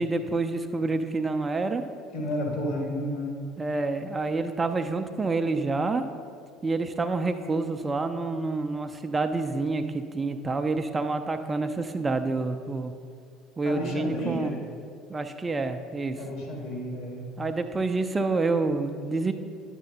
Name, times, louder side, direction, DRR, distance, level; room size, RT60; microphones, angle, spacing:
voice 1, 0.0-1.8 3.6-6.0 6.6-12.9 13.6-14.5 15.1-16.2 17.4-19.3, right 3 dB, 20° right, 7 dB, 0.4 m, -28 dB
voice 2, 2.1-3.4 13.6-14.6 16.2-17.3, equal, 65° left, 0 dB, 1.8 m, -31 dB
9.6 x 7.5 x 2.8 m, 2.3 s
figure-of-eight pair, 65°, 0 cm